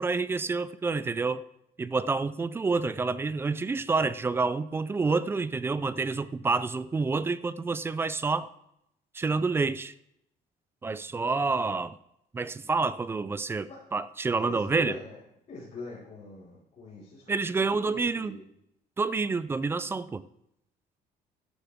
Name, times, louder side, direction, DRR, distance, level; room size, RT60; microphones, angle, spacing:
voice 1, 0.0-1.4 1.8-8.5 9.1-9.9 10.8-12.0 12.3-15.0 17.3-18.4 19.0-20.2, right 4 dB, 15° right, 16 dB, 0.3 m, -28 dB
voice 2, 14.4-15.2 15.5-17.4 17.6-18.4, left 2 dB, 40° left, -9 dB, 4.7 m, -43 dB
12.0 x 11.5 x 3.5 m, 0.78 s
cardioid pair, 160°, 16 cm